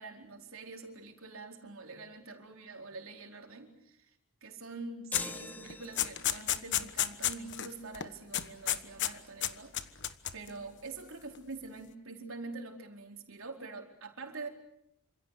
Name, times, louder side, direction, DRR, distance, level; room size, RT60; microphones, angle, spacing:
voice 1, 0.0-4.1 4.4-9.7 10.3-14.5, right 3 dB, 65° right, 3 dB, 4.5 m, -45 dB
sound 1, 5.1-5.3 5.7-7.7 7.9-8.1 8.3-9.1 9.4-10.5, left 11 dB, 55° left, 1.3 m, -32 dB
sound 2, 5.1-6.4, left 2 dB, 10° left, 1.2 m, -42 dB
27.5 x 26.5 x 6.8 m, 0.78 s
head